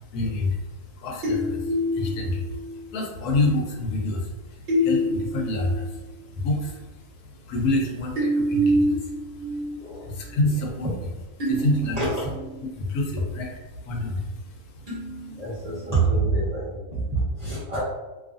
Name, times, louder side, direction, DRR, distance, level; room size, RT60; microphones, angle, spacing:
voice 1, 0.1-6.9 7.3-10.9 11.4-12.1 12.8-15.4, left 2 dB, 75° left, 1 dB, 1.1 m, -28 dB
sound 1, 1.2-2.9 4.7-5.9 6.5-6.6 8.2-9.8 10.2-10.3 11.4-12.7 14.9-16.1, equal, 40° right, 0.9 m, -27 dB
voice 2, 11.9-12.3 15.4-17.8, right 3 dB, 85° right, -9 dB, 0.3 m, -26 dB
2.6 x 2.4 x 2.4 m, 1.1 s
omnidirectional pair, 1.7 m